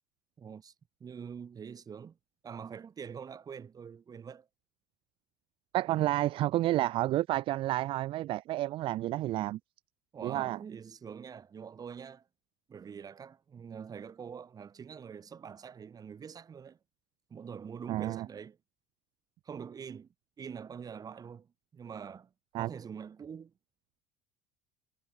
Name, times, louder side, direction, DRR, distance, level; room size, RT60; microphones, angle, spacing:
voice 1, 0.4-0.7 1.0-2.2 2.4-4.5 10.1-12.3 12.7-16.8 17.3-18.6 19.4-20.1 20.4-22.3 22.6-23.5, right 7 dB, 35° right, 6.2 m, -45 dB
voice 2, 5.7-9.6 10.2-10.6 17.9-18.3 22.5-22.7, right 15 dB, 55° right, 0.9 m, -30 dB
hypercardioid pair, 75°, 11 cm